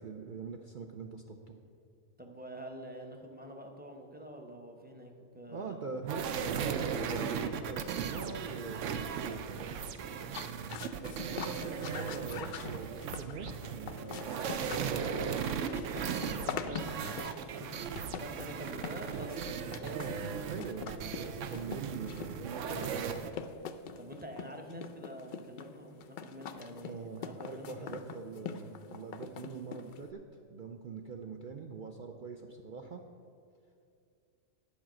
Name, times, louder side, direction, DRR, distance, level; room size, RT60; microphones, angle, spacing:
voice 1, 0.0-1.4 5.5-9.6 11.0-15.4 19.8-20.2 20.4-23.1 26.8-30.2 30.5-33.0, right 5 dB, 55° right, 3 dB, 0.6 m, -43 dB
voice 2, 2.2-5.7 11.1-11.4 14.0-14.2 16.1-17.9 18.1-19.7 24.0-28.0, equal, 10° right, 3 dB, 0.7 m, -46 dB
sound 1, 6.1-23.3, right 7 dB, 75° right, 0.9 m, -37 dB
sound 2, 10.2-30.1, left 6 dB, 65° left, 0.5 m, -44 dB
10.0 x 5.0 x 7.5 m, 2.4 s
omnidirectional pair, 1.3 m